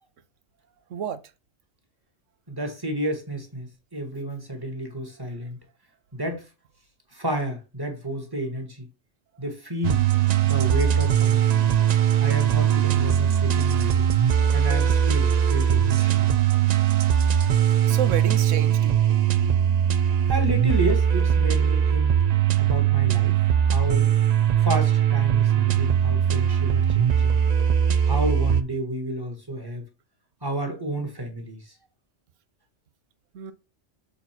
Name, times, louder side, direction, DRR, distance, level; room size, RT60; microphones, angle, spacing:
voice 1, 0.9-1.2 17.9-19.1 33.3-33.5, right 8 dB, 85° right, 1.1 m, -30 dB
voice 2, 2.5-5.6 6.1-6.5 7.1-8.9 9.4-10.0 10.4-11.7 12.2-14.1 14.5-16.3 20.3-22.1 22.6-24.1 24.6-27.4 28.0-29.9 30.4-31.7, right 1 dB, 20° right, 1.5 m, -31 dB
sound 1, 9.8-28.6, right 9 dB, 60° right, 0.4 m, -20 dB
6.9 x 4.1 x 4.4 m
omnidirectional pair, 1.3 m